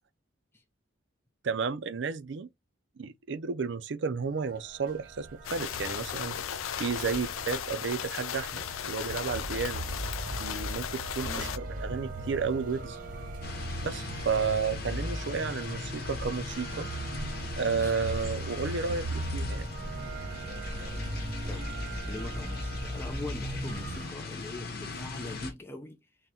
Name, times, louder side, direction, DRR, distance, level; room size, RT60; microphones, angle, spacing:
voice 1, 1.4-2.5 3.0-6.4 6.8-9.8 10.4-13.0 13.8-16.9 17.6-19.7, right 5 dB, 60° right, 0.5 m, -32 dB
sound 1, 4.5-24.1, right 1 dB, 45° right, 1.0 m, -38 dB
sound 2, 5.4-11.6, left 9 dB, 90° left, 0.4 m, -36 dB
voice 2, 11.2-11.6 17.8-17.9 21.5-21.6 22.1-26.0, left 2 dB, 10° left, 0.5 m, -42 dB
sound 3, 13.4-25.5, left 3 dB, 50° left, 0.9 m, -40 dB
3.8 x 2.1 x 4.2 m
head